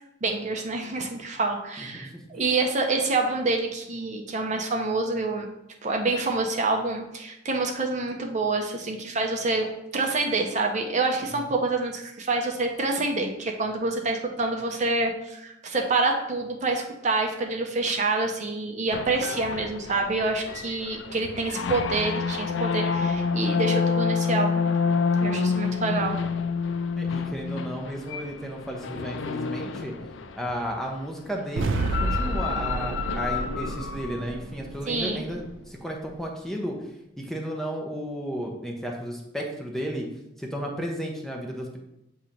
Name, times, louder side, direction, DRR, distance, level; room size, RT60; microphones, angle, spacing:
voice 1, 0.2-5.5 5.8-9.7 9.9-24.7 25.2-26.2 34.9-35.3, right 3 dB, 35° right, 2 dB, 0.6 m, -27 dB
voice 2, 1.8-2.1 2.3-2.4 27.0-29.9 30.4-36.8 37.2-40.1 40.4-41.8, equal, ahead, 0 dB, 0.7 m, -33 dB
sound 1, 18.9-30.7 31.6-34.2, left 5 dB, 70° left, 0.4 m, -28 dB
sound 2, 31.6-35.7, right 2 dB, 75° right, 0.4 m, -30 dB
7.1 x 2.9 x 5.1 m, 0.86 s
head